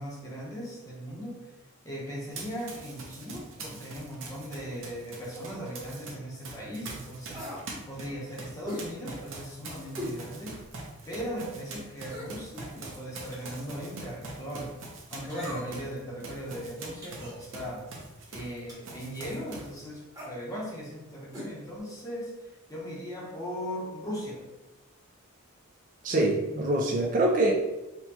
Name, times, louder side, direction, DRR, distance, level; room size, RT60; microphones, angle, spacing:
voice 1, 0.0-1.4 1.8-7.4 7.9-10.6 11.1-14.7 15.1-17.9 18.3-22.3 22.7-24.4, equal, 15° left, -4 dB, 0.8 m, -38 dB
Run, 2.3-6.1 6.4-18.6 18.8-19.8, right 3 dB, 60° right, 0.7 m, -43 dB
sound 1, 7.3-7.7 8.7-8.9 10.0-10.2 10.7-10.8 12.0-12.4 13.3-13.7 15.3-15.9 17.0-17.4 18.7-19.0 20.1-20.3 21.3-21.5 21.8-21.9, left 1 dB, 15° right, 1.0 m, -39 dB
voice 2, 26.0-27.5, right 1 dB, 35° right, 0 dB, 0.4 m, -24 dB
4.4 x 2.2 x 2.8 m, 0.99 s
head